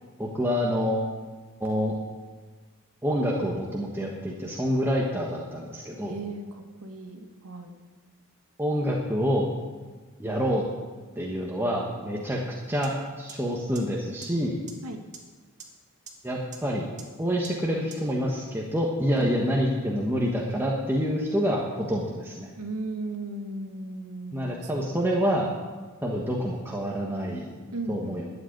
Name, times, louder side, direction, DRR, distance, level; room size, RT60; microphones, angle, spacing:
voice 1, 0.2-1.1 1.6-1.9 3.0-6.1 8.6-9.4 10.2-10.6 11.1-12.4 12.7-14.6 16.2-16.9 17.2-22.5 24.3-25.5 26.0-27.6 27.9-28.3, equal, 10° right, -2 dB, 1.4 m, -27 dB
voice 2, 6.0-7.8 12.1-12.3 14.8-15.0 19.1-19.3 22.6-25.3 27.7-28.2, right 2 dB, 90° right, 4 dB, 1.9 m, -37 dB
sound 1, 12.8-12.9 13.3-13.4 13.7-13.8 14.2-14.3 14.7-14.8 15.1-15.2 15.6-15.7 16.1-16.2 16.5-16.6 17.0-17.1 17.4-17.5 17.9-18.0, right 6 dB, 35° right, 2.0 m, -42 dB
12.5 x 7.9 x 9.6 m, 1.4 s
head